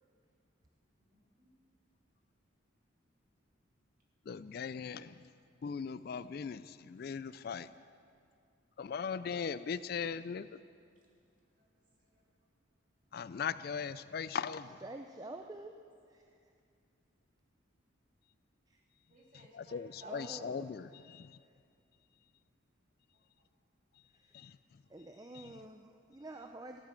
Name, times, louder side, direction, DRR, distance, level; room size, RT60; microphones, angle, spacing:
voice 1, 1.0-1.5 11.5-11.7 12.0-12.2 19.1-20.5, right 2 dB, 40° right, -2 dB, 3.0 m, -58 dB
voice 2, 4.3-5.2 5.6-7.7 8.8-10.6 13.1-14.8 19.5-21.4 24.3-24.6 25.3-25.4, left 6 dB, 50° left, 15 dB, 0.3 m, -39 dB
voice 3, 14.8-15.7 16.1-16.2 18.7-18.8 20.0-20.7 24.1-24.4 24.9-26.8, right 2 dB, 20° right, 5 dB, 0.5 m, -48 dB
14.5 x 11.5 x 7.6 m, 2.3 s
head